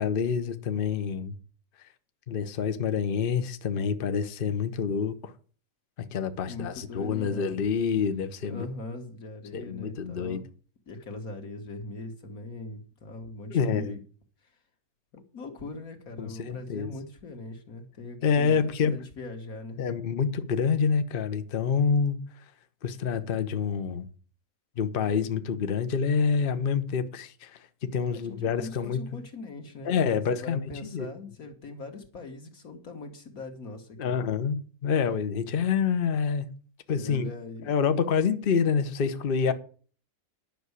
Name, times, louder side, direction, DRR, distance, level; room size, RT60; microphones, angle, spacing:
voice 1, 0.0-1.3 2.3-5.3 6.0-8.7 9.5-10.4 13.5-14.0 16.2-16.9 18.2-18.9 19.8-22.2 22.8-24.1 24.8-29.0 29.8-31.1 34.0-36.5 36.9-37.3 37.6-39.5, left 6 dB, 45° left, 1.0 m, -27 dB
voice 2, 6.5-7.6 8.5-10.4 10.9-14.0 14.4-14.5 15.1-19.8 28.1-34.2 36.9-37.7 39.4-39.5, left 2 dB, 90° left, 2.3 m, -41 dB
10.5 x 6.2 x 8.1 m
omnidirectional pair, 1.5 m